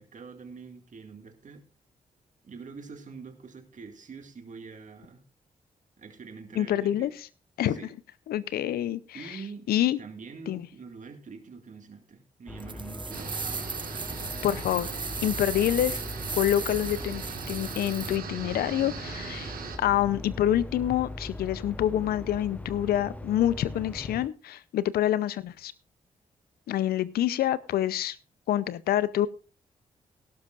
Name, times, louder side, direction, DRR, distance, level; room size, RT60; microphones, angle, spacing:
voice 1, 0.0-1.6 2.4-5.2 6.0-7.1 7.6-7.9 9.1-9.7 10.0-13.6, right 5 dB, 55° right, 5 dB, 2.2 m, -45 dB
voice 2, 6.6-7.1 7.6-7.8 8.3-9.4 9.7-10.0 10.5-10.7 14.4-14.9 15.2-16.0 16.4-17.2 17.5-25.7 26.7-28.2 28.5-29.3, left 12 dB, 75° left, 18 dB, 0.6 m, -27 dB
sound 1, 12.5-24.3, left 1 dB, 10° left, 0.6 m, -40 dB
sound 2, 12.6-18.2, right 4 dB, 30° right, 0.7 m, -37 dB
sound 3, 13.1-19.8, right 7 dB, 70° right, 1.7 m, -40 dB
18.0 x 12.0 x 2.5 m, 0.35 s
hypercardioid pair, 45°, 16 cm